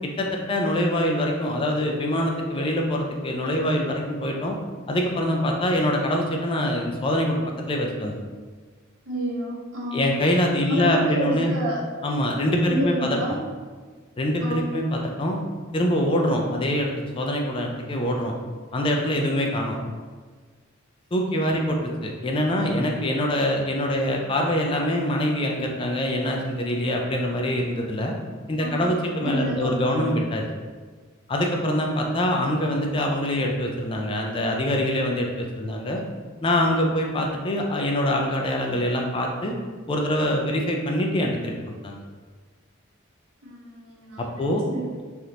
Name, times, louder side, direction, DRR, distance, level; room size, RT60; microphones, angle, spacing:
voice 1, 0.2-4.6 4.9-8.1 9.9-11.5 12.0-13.2 14.2-15.4 15.7-18.3 18.7-19.8 21.1-28.1 28.5-30.4 31.3-36.0 36.4-39.5 39.9-42.0 44.2-44.6, left 1 dB, 25° left, 1 dB, 0.3 m, -24 dB
voice 2, 9.0-10.1 10.7-11.8 12.6-13.3 14.4-14.6 28.6-28.9 29.2-30.1 43.4-44.9, equal, 90° right, -5 dB, 1.0 m, -30 dB
3.4 x 2.5 x 2.8 m, 1.5 s
head